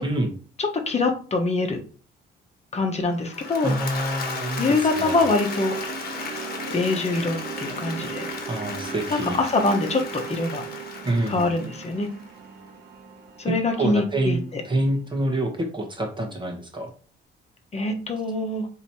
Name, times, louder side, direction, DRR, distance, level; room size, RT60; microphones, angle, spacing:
voice 1, 0.0-0.3 3.6-5.2 8.5-9.4 11.0-11.5 13.5-16.9, right 1 dB, 25° right, 2 dB, 1.0 m, -27 dB
voice 2, 0.6-1.8 2.7-3.7 4.6-5.7 6.7-8.3 9.4-10.6 11.3-12.1 13.4-14.4 17.7-18.7, left 3 dB, 35° left, 3 dB, 1.0 m, -24 dB
Applause / Crowd, 3.2-12.3, left 4 dB, 50° left, 1.1 m, -35 dB
sound 1, 3.3-15.4, right 7 dB, 65° right, 0.9 m, -39 dB
3.1 x 2.8 x 4.2 m, 0.40 s
cardioid pair, 90°, 20 cm